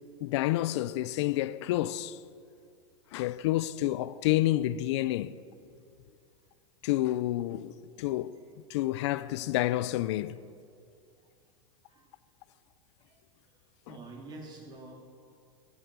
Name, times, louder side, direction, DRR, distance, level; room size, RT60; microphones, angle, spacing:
voice 1, 0.2-2.2 3.1-5.4 6.8-10.4 13.9-14.0, left 15 dB, 65° left, 0.6 m, -29 dB
voice 2, 13.9-14.9, right 2 dB, 30° right, 3.2 m, -46 dB
21.0 x 11.0 x 6.2 m
supercardioid pair, 125°, 16 cm